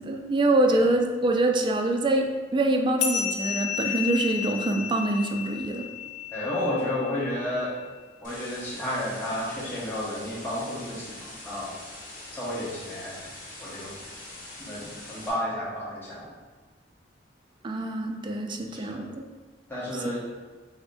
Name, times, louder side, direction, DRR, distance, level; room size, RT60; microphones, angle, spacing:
voice 1, 0.0-5.9 17.6-19.2 19.9-20.2, right 2 dB, 25° right, 3 dB, 0.3 m, -25 dB
sound 1, 3.0-7.9, left 8 dB, 65° left, 0.4 m, -33 dB
voice 2, 6.3-7.8 8.2-11.7 12.3-13.2 13.6-14.0 14.6-16.3 18.7-19.1 19.7-20.2, left 1 dB, 10° left, -8 dB, 1.1 m, -32 dB
sound 2, 8.2-15.3, left 2 dB, 50° left, 0.9 m, -43 dB
6.1 x 2.1 x 2.6 m, 1.4 s
head